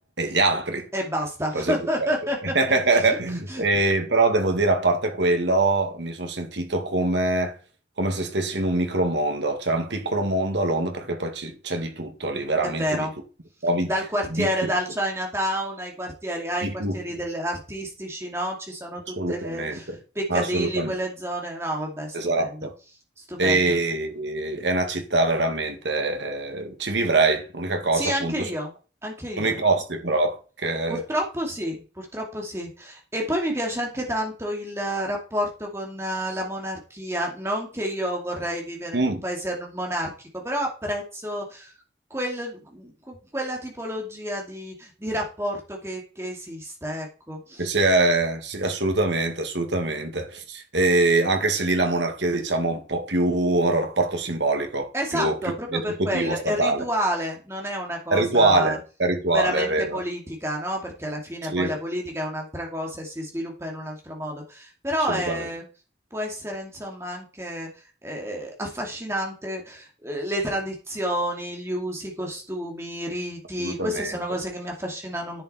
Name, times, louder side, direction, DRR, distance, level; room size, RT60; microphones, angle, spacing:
voice 1, 0.2-0.9 1.5-2.1 2.5-7.5 8.0-13.1 13.6-13.9 14.3-14.5 16.6-17.0 19.2-19.8 20.3-20.9 22.1-22.7 23.4-28.5 29.4-31.0 38.9-39.2 47.6-56.8 58.1-60.0 61.5-61.8 65.1-65.5 73.6-74.2, right 2 dB, 85° right, 2.0 m, -24 dB
voice 2, 0.9-2.6 2.9-3.0 3.5-3.6 12.6-13.1 13.9-22.7 23.2-23.8 27.9-28.7 29.0-29.6 30.9-41.7 42.1-47.8 54.9-58.8 59.3-65.6 66.1-75.4, equal, 15° right, 2.4 m, -30 dB
10.5 x 6.8 x 4.3 m
head